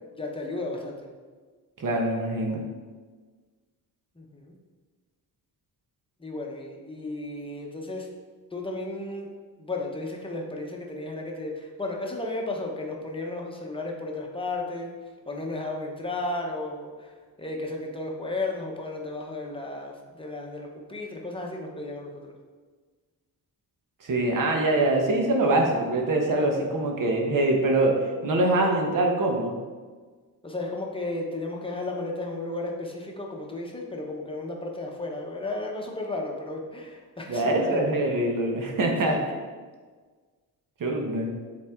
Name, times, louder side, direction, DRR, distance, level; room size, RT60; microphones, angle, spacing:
voice 1, 0.2-1.0 4.2-4.5 6.2-8.1 8.5-9.3 9.6-14.9 15.3-22.3 30.4-38.1 39.0-39.2, left 2 dB, 15° left, 0 dB, 0.9 m, -34 dB
voice 2, 1.8-2.6 24.0-29.6 37.3-39.1 40.8-41.3, right 2 dB, 55° right, 1 dB, 1.2 m, -24 dB
7.2 x 4.3 x 3.6 m, 1.4 s
cardioid pair, 125°, 38 cm